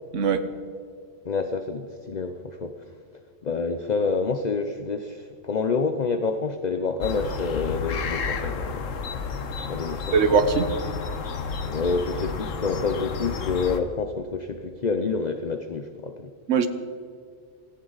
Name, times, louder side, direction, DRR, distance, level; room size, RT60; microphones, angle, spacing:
voice 1, 0.1-0.5 10.1-10.7 16.5-16.7, right 5 dB, 70° right, 10 dB, 1.3 m, -20 dB
voice 2, 1.2-3.0 3.4-8.9 9.7-10.1 11.6-16.3, left 4 dB, 40° left, 8 dB, 0.7 m, -28 dB
sound 1, 7.0-13.8, left 5 dB, 80° left, 1.4 m, -31 dB
18.0 x 15.5 x 4.0 m, 2.3 s
omnidirectional pair, 1.3 m